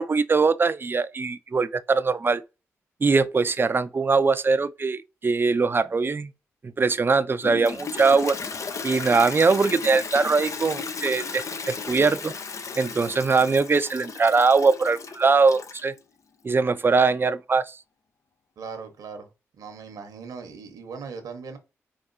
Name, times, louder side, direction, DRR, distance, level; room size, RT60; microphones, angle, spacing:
voice 1, 0.0-2.4 3.0-6.3 6.6-8.4 8.8-12.3 12.8-15.9 16.4-17.8, right 4 dB, 35° right, 0.5 m, -22 dB
Toilet flush, 7.4-16.0, left 5 dB, 55° left, 0.6 m, -35 dB
voice 2, 18.6-19.3 19.6-21.6, right 5 dB, 75° right, 1.1 m, -39 dB
4.8 x 2.6 x 2.6 m
supercardioid pair, 45°, 6 cm